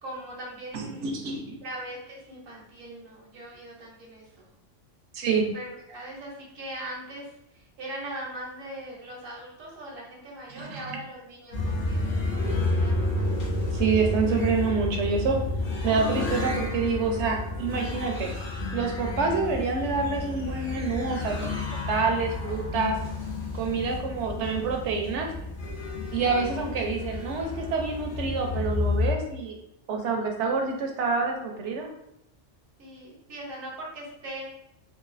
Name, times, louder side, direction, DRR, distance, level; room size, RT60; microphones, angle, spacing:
voice 1, 0.0-1.1 1.6-4.5 5.3-12.2 12.4-13.4 22.5-22.7 24.2-24.4 32.8-34.5, right 1 dB, 85° right, -3 dB, 1.2 m, -41 dB
voice 2, 0.7-1.6 5.1-5.5 10.6-11.0 13.7-15.4 15.8-18.3 18.7-23.0 23.5-25.3 26.1-29.5 29.9-31.9, right 4 dB, 70° right, 2 dB, 0.9 m, -27 dB
sound 1, 11.5-29.1, left 2 dB, 75° left, 1.3 m, -30 dB
4.0 x 2.5 x 2.5 m, 0.81 s
omnidirectional pair, 1.3 m